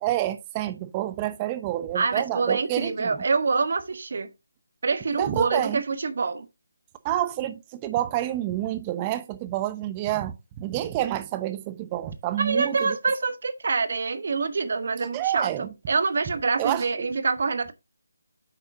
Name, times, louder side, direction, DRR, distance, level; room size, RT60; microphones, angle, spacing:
voice 1, 0.0-3.2 5.2-5.8 7.0-13.0 15.1-15.7 16.6-17.1, right 13 dB, 20° right, 0.8 m, -28 dB
voice 2, 1.9-4.3 4.8-6.5 12.4-17.7, right 4 dB, 55° right, 1.1 m, -26 dB
8.6 x 6.8 x 2.6 m
figure-of-eight pair, 155°, 0 cm